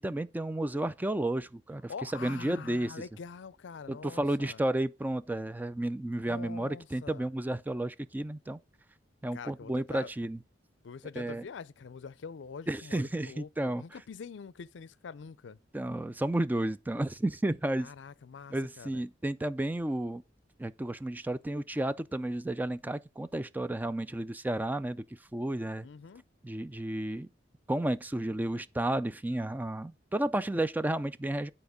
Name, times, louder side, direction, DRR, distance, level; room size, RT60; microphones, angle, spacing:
voice 1, 0.0-3.0 3.9-8.6 9.2-10.4 11.2-11.4 12.7-13.8 15.7-17.9 18.5-20.2 20.6-25.0 25.3-25.9 26.4-27.3 27.7-31.5, right 1 dB, 10° right, 0.3 m, -32 dB
voice 2, 1.9-4.6 6.3-7.3 9.3-10.1 10.8-15.6 17.8-19.0 25.8-26.2, left 5 dB, 70° left, 0.4 m, -45 dB
9.4 x 4.3 x 4.9 m
head